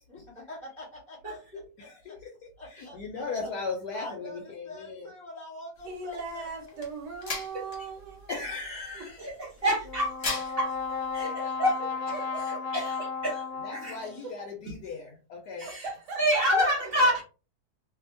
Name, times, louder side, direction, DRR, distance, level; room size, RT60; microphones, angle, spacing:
voice 1, 0.1-1.4 1.8-2.2 2.6-3.2 3.9-6.8 14.0-14.3 16.5-17.1, left 1 dB, 20° left, 1.1 m, -44 dB
voice 2, 1.2-1.6 2.8-2.9 7.5-7.6 8.3-8.4 9.2-10.7 11.1-11.8 12.1-12.2 12.7-13.0 13.2-13.4 13.7-14.0 15.6-15.9 16.2-17.2, equal, 55° right, 0.7 m, -28 dB
voice 3, 1.8-5.1 8.3-9.2 13.6-15.7, left 4 dB, 70° left, 1.0 m, -37 dB
sound 1, 5.8-11.2, left 3 dB, 45° left, 1.0 m, -41 dB
voice 4, 5.8-8.4 8.9-9.0 11.8-12.7 14.2-14.3 15.6-16.2, right 4 dB, 75° right, 1.4 m, -39 dB
Brass instrument, 9.8-14.2, left 5 dB, 85° left, 1.3 m, -34 dB
2.7 x 2.7 x 2.5 m
omnidirectional pair, 1.9 m